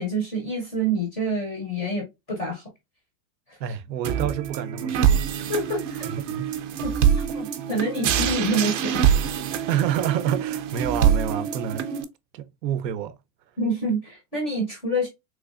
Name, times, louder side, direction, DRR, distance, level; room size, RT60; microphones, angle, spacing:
voice 1, 0.0-2.7 3.5-3.6 5.5-6.1 6.8-9.0 13.6-15.1, right 1 dB, 15° left, 0.4 m, -27 dB
voice 2, 3.6-5.5 6.0-6.5 9.7-11.9 12.3-13.2, right 9 dB, 90° right, 0.7 m, -28 dB
sound 1, 4.0-12.0, right 8 dB, 50° right, 0.5 m, -24 dB
3.4 x 3.1 x 2.3 m
supercardioid pair, 170°, 49 cm